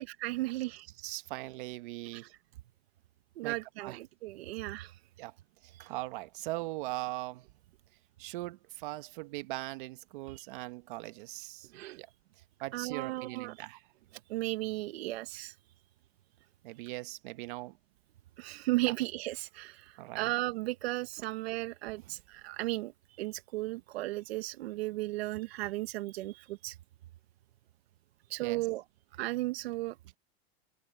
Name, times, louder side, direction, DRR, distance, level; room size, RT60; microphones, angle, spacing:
voice 1, 0.0-0.9 2.1-2.2 3.4-4.9 5.8-5.9 10.3-10.4 11.7-12.0 12.7-13.5 14.3-15.5 18.4-22.9 23.2-26.8 28.3-28.8 29.2-30.0, right 19 dB, 75° right, 1.2 m, -35 dB
voice 2, 1.0-2.3 3.4-4.0 5.2-5.3 5.6-7.5 8.2-12.1 12.6-13.8 16.6-17.8 18.9-19.0 20.0-20.3 28.4-28.7, right 20 dB, 55° right, 1.3 m, -40 dB
open air
supercardioid pair, 175°, 31 cm